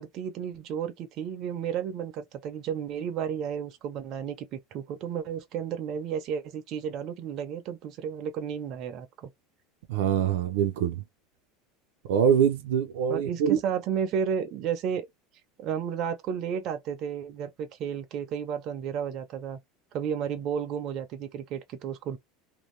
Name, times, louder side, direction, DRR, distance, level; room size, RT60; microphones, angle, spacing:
voice 1, 0.0-9.3 13.1-15.1 15.6-19.6 19.9-22.2, right 8 dB, 40° right, 0.6 m, -32 dB
voice 2, 9.9-11.0 12.1-13.6, right 8 dB, 85° right, 0.6 m, -24 dB
2.6 x 2.2 x 3.1 m
supercardioid pair, 165°, 0 cm